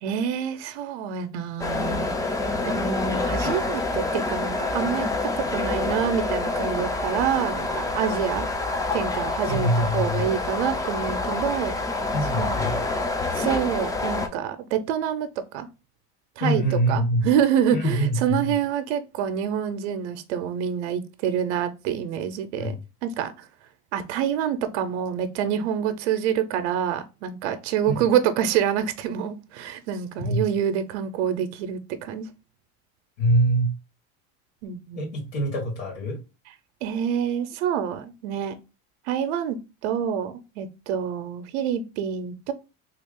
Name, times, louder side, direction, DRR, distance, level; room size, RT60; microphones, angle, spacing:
voice 1, 0.0-2.1 2.6-8.5 8.9-11.8 12.4-12.5 13.3-15.7 16.4-22.8 23.0-23.5 23.9-32.3 34.6-35.1 36.8-38.5 39.0-42.5, right 8 dB, 85° right, 9 dB, 0.6 m, -27 dB
sound 1, 1.6-14.3, left 3 dB, 10° left, 0.4 m, -27 dB
voice 2, 9.5-10.3 12.1-12.8 16.4-17.3 17.7-18.5 22.5-22.8 27.9-28.0 30.2-30.5 33.2-33.7 35.0-36.2, right 1 dB, 80° left, -3 dB, 1.9 m, -24 dB
3.4 x 2.4 x 3.5 m, 0.29 s
supercardioid pair, 120°, 34 cm